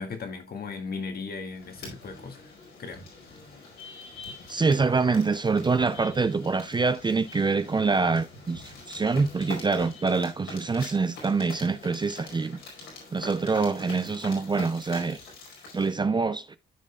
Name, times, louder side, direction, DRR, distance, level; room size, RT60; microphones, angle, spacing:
voice 1, 0.0-2.4 2.8-3.0, left 4 dB, 50° left, 2.0 m, -36 dB
sound 1, 1.5-15.9, left 3 dB, 80° left, 5.0 m, -45 dB
voice 2, 4.5-12.6 13.1-15.2 15.7-16.6, right 4 dB, 20° right, 0.6 m, -25 dB
14.5 x 5.0 x 2.3 m
cardioid pair, 90°, 20 cm